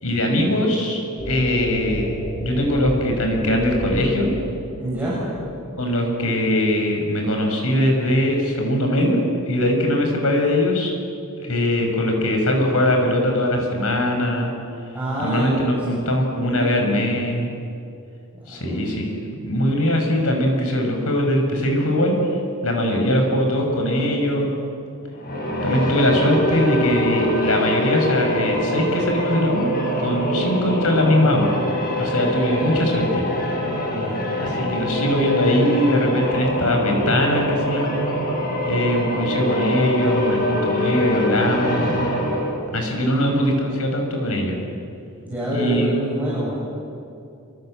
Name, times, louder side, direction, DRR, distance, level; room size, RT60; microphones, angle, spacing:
voice 1, 0.0-4.3 5.8-10.9 11.4-14.5 15.2-17.4 18.5-19.1 19.4-22.1 22.6-24.5 25.6-29.7 30.0-31.5 32.0-33.2 34.4-37.9 38.7-42.0 42.7-44.6 45.5-45.9, left 1 dB, 70° left, 2 dB, 6.2 m, -21 dB
sound 1, 1.2-6.3, equal, 10° left, 3.0 m, -32 dB
voice 2, 4.8-5.2 14.9-16.0 16.2-17.1 18.4-18.8 33.9-34.2 45.2-46.6, right 1 dB, 10° right, -8 dB, 7.7 m, -27 dB
sound 2, 25.1-42.6, equal, 40° left, 7.9 m, -24 dB
27.5 x 25.0 x 8.0 m, 2.6 s
head